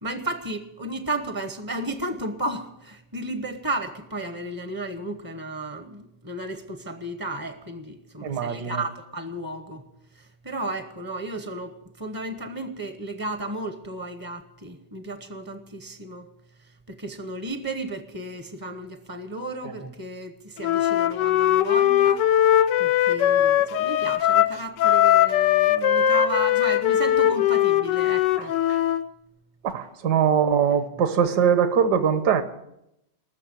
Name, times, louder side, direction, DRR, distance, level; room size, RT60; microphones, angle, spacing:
voice 1, 0.0-9.8 10.2-16.3 16.9-22.3 22.8-28.6 30.9-31.0, right 1 dB, 20° right, 0.6 m, -33 dB
voice 2, 8.2-8.8 28.7-28.8 29.6-32.4, right 8 dB, 70° right, 1.7 m, -22 dB
Wind instrument woodwind instrument, 20.6-29.0, left 11 dB, 85° left, 1.4 m, -20 dB
19.5 x 6.8 x 9.0 m
omnidirectional pair, 1.9 m